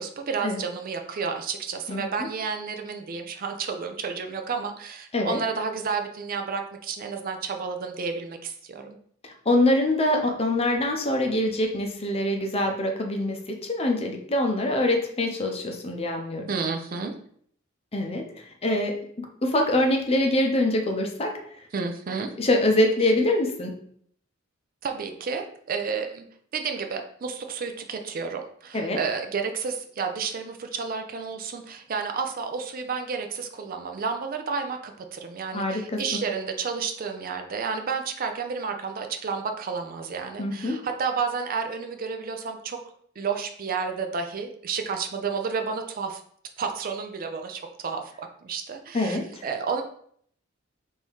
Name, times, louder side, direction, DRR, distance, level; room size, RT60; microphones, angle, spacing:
voice 1, 0.0-9.0 16.5-17.1 21.7-22.3 24.8-26.2 26.5-42.8 43.2-46.2 46.6-49.8, right 5 dB, 45° right, 5 dB, 0.4 m, -31 dB
voice 2, 9.5-16.4 17.9-21.3 22.4-23.7 28.7-29.0 35.5-36.0 40.4-40.8 48.9-49.2, left 1 dB, 30° left, 3 dB, 0.6 m, -24 dB
3.7 x 2.7 x 4.6 m, 0.63 s
head